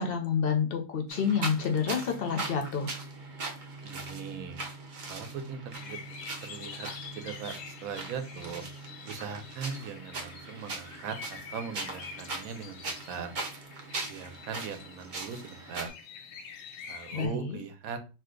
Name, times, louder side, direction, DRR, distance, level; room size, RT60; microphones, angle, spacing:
voice 1, 0.0-2.9 17.1-17.6, left 6 dB, 65° left, 4 dB, 0.5 m, -29 dB
sound 1, 1.1-15.9, right 3 dB, 50° right, 0.6 m, -40 dB
voice 2, 3.8-4.6 5.1-6.0 6.4-8.7 9.0-13.3 14.1-15.9 16.8-18.0, right 6 dB, 85° right, 7 dB, 1.0 m, -40 dB
sound 2, 5.7-17.3, left 6 dB, 90° left, 1.1 m, -47 dB
2.7 x 2.2 x 3.6 m, 0.31 s
omnidirectional pair, 1.5 m